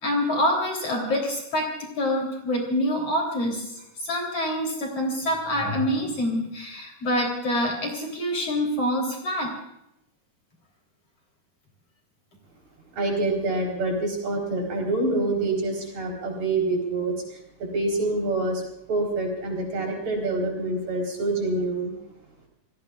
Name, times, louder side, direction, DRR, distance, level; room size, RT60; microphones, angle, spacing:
voice 1, 0.0-3.6 4.0-9.5, equal, 40° left, 0 dB, 4.3 m, -26 dB
voice 2, 13.0-17.1 17.7-18.6 18.9-21.9, right 2 dB, 45° right, 0 dB, 5.4 m, -26 dB
29.0 x 19.5 x 2.5 m, 0.82 s
omnidirectional pair, 4.5 m